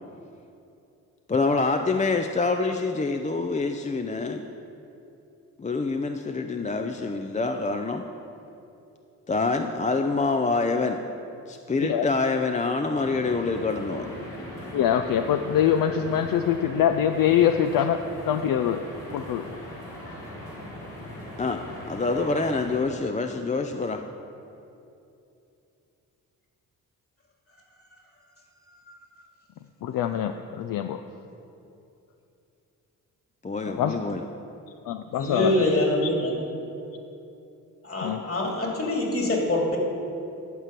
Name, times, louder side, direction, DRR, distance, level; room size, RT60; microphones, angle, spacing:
voice 1, 1.3-4.4 5.6-8.1 9.3-11.0 11.5-14.1 21.4-24.0 33.4-34.3, left 3 dB, 20° left, 5 dB, 0.5 m, -26 dB
sound 1, 12.9-22.8, left 1 dB, 90° left, 2.6 m, -40 dB
voice 2, 14.7-18.8 19.1-19.5 29.8-31.0 33.7-34.0 34.9-35.5 36.2-36.3 38.0-38.2, left 9 dB, 65° left, 7 dB, 0.5 m, -24 dB
voice 3, 35.2-36.4 37.8-39.8, left 1 dB, 40° left, -1 dB, 2.5 m, -25 dB
11.5 x 4.4 x 7.6 m, 2.8 s
cardioid pair, 60°, 36 cm